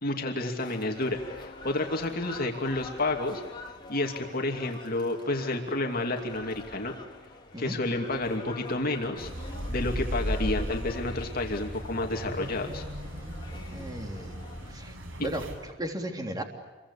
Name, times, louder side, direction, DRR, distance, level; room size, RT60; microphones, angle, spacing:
voice 1, 0.0-3.4 3.9-6.9 7.6-9.3 9.7-12.8, left 2 dB, 50° left, 3 dB, 2.8 m, -30 dB
sound 1, 0.6-14.7, left 2 dB, 25° left, 4.4 m, -46 dB
sound 2, 9.2-15.5, equal, 85° right, 7.4 m, -36 dB
voice 2, 13.7-14.4 14.7-16.4, right 1 dB, 20° right, 3 dB, 3.4 m, -35 dB
29.0 x 24.0 x 8.4 m, 1.3 s
head